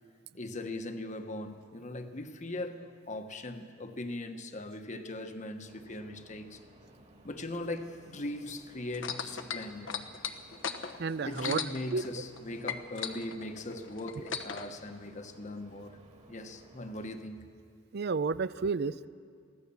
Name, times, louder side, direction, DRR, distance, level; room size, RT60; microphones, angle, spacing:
voice 1, 0.3-6.6 7.2-10.1 11.2-16.0 16.3-17.5, left 1 dB, 40° left, 7 dB, 1.3 m, -40 dB
sound 1, 5.6-17.2, right 2 dB, 35° right, 2.1 m, -57 dB
sound 2, 8.9-12.4 12.6-14.7 15.5-15.6, left 7 dB, 70° left, 1.1 m, -37 dB
voice 2, 11.0-11.6 11.9-12.0 17.9-19.1, right 4 dB, 55° right, 16 dB, 0.5 m, -31 dB
23.5 x 16.5 x 7.1 m, 2.2 s
head